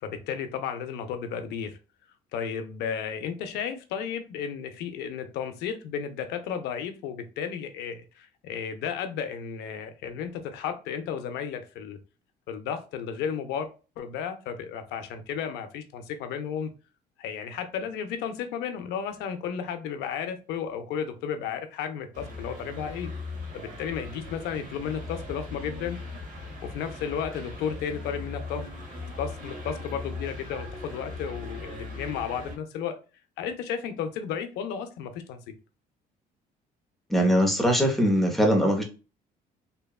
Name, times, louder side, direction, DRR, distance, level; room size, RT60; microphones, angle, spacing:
voice 1, 0.0-1.8 2.3-12.0 12.5-13.7 14.0-16.7 17.2-23.1 23.5-26.0 26.6-28.6 29.2-33.0 33.4-35.5, left 7 dB, 85° left, 8 dB, 0.5 m, -33 dB
sound 1, 22.1-32.6, left 3 dB, 50° right, 1.1 m, -39 dB
voice 2, 37.1-38.8, equal, ahead, 1 dB, 0.7 m, -21 dB
2.9 x 2.2 x 2.3 m, 0.33 s
cardioid pair, 110°, 17 cm